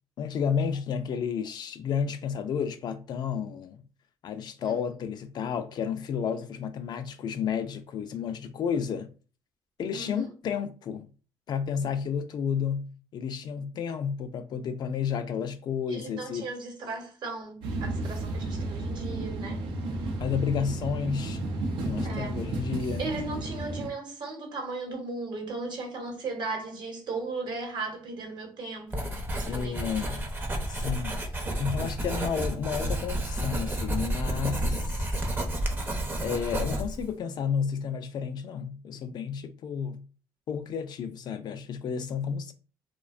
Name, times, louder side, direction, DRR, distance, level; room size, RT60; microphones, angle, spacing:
voice 1, 0.2-3.8 4.2-9.1 9.8-11.1 11.5-16.5 20.2-21.4 21.8-23.1 29.5-30.2 30.7-31.2 31.6-35.1 36.2-40.0 40.5-42.5, left 7 dB, 55° left, 0.3 m, -31 dB
voice 2, 9.9-10.3 15.9-19.6 22.0-22.4 23.0-30.2, right 3 dB, 60° right, 0.9 m, -37 dB
sound 1, 17.6-23.9, right 2 dB, 75° right, 0.5 m, -33 dB
Writing, 28.9-37.1, right 1 dB, 25° right, 0.6 m, -31 dB
2.4 x 2.1 x 2.4 m
cardioid pair, 90°, 9 cm